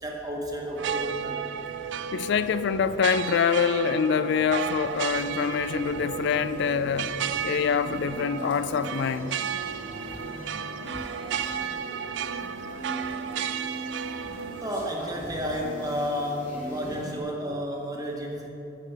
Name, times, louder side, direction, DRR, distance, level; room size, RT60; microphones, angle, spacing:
voice 1, 0.0-1.5 14.6-18.5, equal, 20° right, 1.0 m, -31 dB
sound 1, 0.8-14.9, right 8 dB, 65° right, 0.3 m, -33 dB
voice 2, 2.1-7.2 7.4-9.4, left 6 dB, 60° left, 0.3 m, -25 dB
sound 2, 4.8-17.2, equal, 45° left, 2.0 m, -41 dB
6.7 x 6.5 x 7.1 m
head